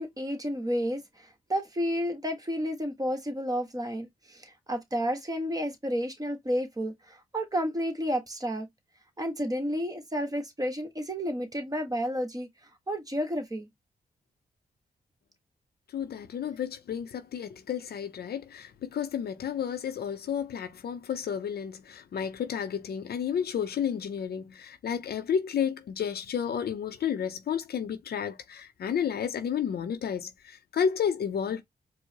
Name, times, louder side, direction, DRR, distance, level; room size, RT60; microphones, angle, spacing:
voice 1, 0.0-8.7 9.2-12.5 12.9-13.7, equal, 20° right, 1.3 m, -31 dB
voice 2, 15.9-31.6, left 8 dB, 70° left, 0.6 m, -31 dB
4.5 x 2.1 x 2.8 m
cardioid pair, 55°, 17 cm